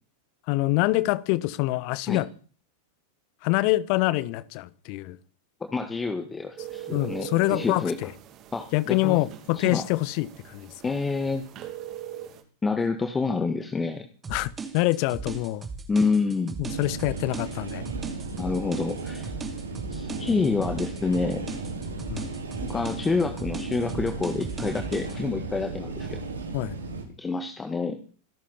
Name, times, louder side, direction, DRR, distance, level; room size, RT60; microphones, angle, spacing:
voice 1, 0.5-2.3 3.4-5.2 6.9-8.1 8.7-10.7 14.3-15.7 16.6-17.8 22.1-22.3 26.5-26.8, left 19 dB, 45° left, 1.1 m, -25 dB
voice 2, 5.7-8.0 8.5-9.2 9.6-9.8 10.8-11.5 12.6-14.0 15.9-16.6 18.4-19.3 19.9-21.5 22.7-26.2 27.2-28.0, left 4 dB, 15° left, 1.9 m, -27 dB
sound 1, 6.6-12.4, right 12 dB, 35° right, 2.8 m, -42 dB
sound 2, 14.2-25.2, right 4 dB, 15° right, 3.0 m, -37 dB
sound 3, 16.7-27.0, right 3 dB, 75° right, 4.5 m, -35 dB
26.0 x 12.5 x 4.4 m
figure-of-eight pair, 90°, 0 cm